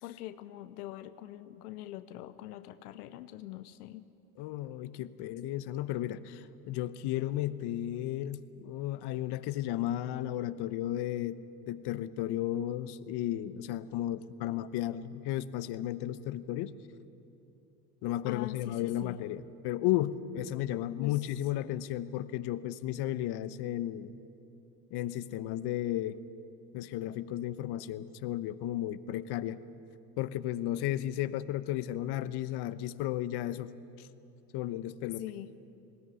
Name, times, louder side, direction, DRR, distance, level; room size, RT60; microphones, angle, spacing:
voice 1, 0.0-4.0 18.3-19.2 21.0-21.2 35.2-35.5, left 14 dB, 85° left, 12 dB, 0.8 m, -43 dB
voice 2, 4.4-16.7 18.0-24.1 24.9-26.2 26.7-29.6 30.2-33.7 34.0-34.1 34.5-35.2, left 13 dB, 60° left, 13 dB, 1.0 m, -34 dB
20.0 x 17.5 x 9.8 m, 2.8 s
hypercardioid pair, 85°, 45 cm